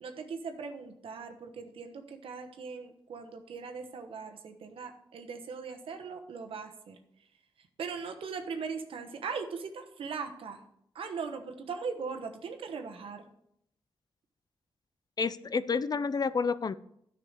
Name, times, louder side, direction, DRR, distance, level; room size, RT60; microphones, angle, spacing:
voice 1, 0.0-7.0 7.8-10.6 10.9-13.2, right 5 dB, 85° right, 5 dB, 1.1 m, -39 dB
voice 2, 15.2-16.7, left 5 dB, 45° left, 16 dB, 0.5 m, -29 dB
10.0 x 5.7 x 6.6 m, 0.75 s
cardioid pair, 60°, 9 cm